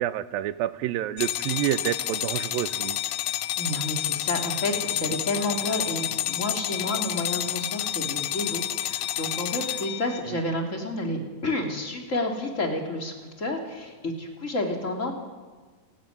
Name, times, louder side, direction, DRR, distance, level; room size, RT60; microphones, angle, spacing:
voice 1, 0.0-3.0 10.3-10.4, right 12 dB, 80° right, 14 dB, 2.5 m, -28 dB
sound 1, 1.2-10.2, left 13 dB, 85° left, 1.5 m, -30 dB
voice 2, 3.6-15.1, left 2 dB, 20° left, 2 dB, 3.1 m, -30 dB
28.5 x 13.0 x 9.5 m, 1.4 s
omnidirectional pair, 4.2 m